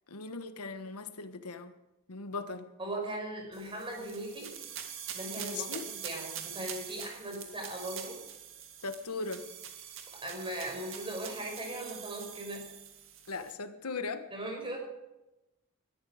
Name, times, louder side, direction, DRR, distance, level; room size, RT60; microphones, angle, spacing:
voice 1, 0.1-1.7 2.1-2.7 5.4-5.8 8.8-9.5 13.3-14.2, left 4 dB, 90° left, 9 dB, 1.3 m, -38 dB
voice 2, 2.8-4.6 5.1-8.2 10.2-12.7 14.3-14.8, right 1 dB, 25° right, 1 dB, 5.5 m, -39 dB
sound 1, 3.5-13.5, right 9 dB, 60° right, 2.3 m, -44 dB
21.0 x 13.0 x 5.0 m, 0.98 s
head